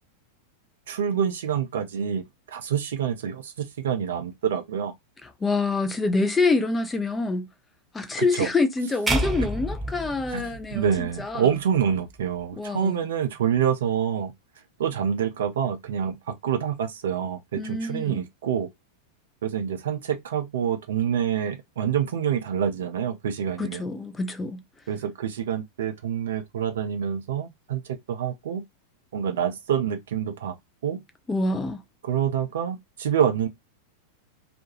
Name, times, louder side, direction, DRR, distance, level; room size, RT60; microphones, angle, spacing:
voice 1, 0.9-2.2 2.5-4.9 8.3-8.5 10.3-14.3 14.8-18.7 19.4-23.8 24.9-27.8 28.1-28.6 29.1-30.6 30.8-31.0 32.0-33.5, right 8 dB, 60° right, 0.5 m, -27 dB
voice 2, 5.2-7.5 7.9-11.5 12.6-13.0 17.6-18.2 23.6-24.6 31.3-31.8, left 3 dB, 15° left, 0.5 m, -26 dB
sound 1, 9.1-11.3, right 1 dB, 5° right, 1.0 m, -29 dB
2.4 x 2.2 x 2.8 m
figure-of-eight pair, 90°, 0 cm